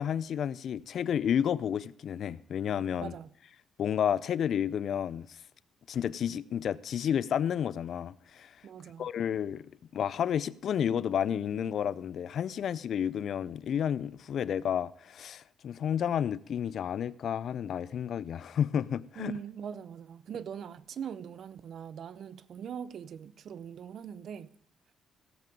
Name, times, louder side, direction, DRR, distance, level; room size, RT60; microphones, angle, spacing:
voice 1, 0.0-3.1 3.8-5.4 5.9-8.5 9.0-9.7 9.9-19.3, left 9 dB, 65° left, 0.4 m, -31 dB
voice 2, 3.0-3.3 8.6-9.1 19.2-24.5, right 8 dB, 65° right, 0.6 m, -41 dB
16.0 x 7.6 x 5.3 m
cardioid pair, 90°, 0 cm